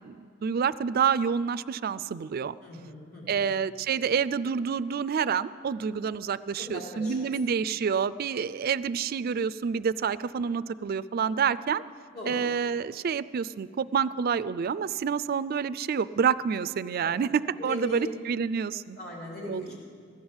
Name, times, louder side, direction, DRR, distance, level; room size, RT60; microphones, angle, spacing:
voice 1, 0.0-2.5 3.3-11.8 12.3-19.0 19.5-19.8, right 6 dB, 50° right, 16 dB, 0.4 m, -28 dB
voice 2, 2.6-3.4 6.6-7.3 12.1-12.4 17.0-17.1 17.6-18.1 19.0-19.8, left 1 dB, 55° left, -3 dB, 3.9 m, -39 dB
15.5 x 10.5 x 7.2 m, 2.1 s
head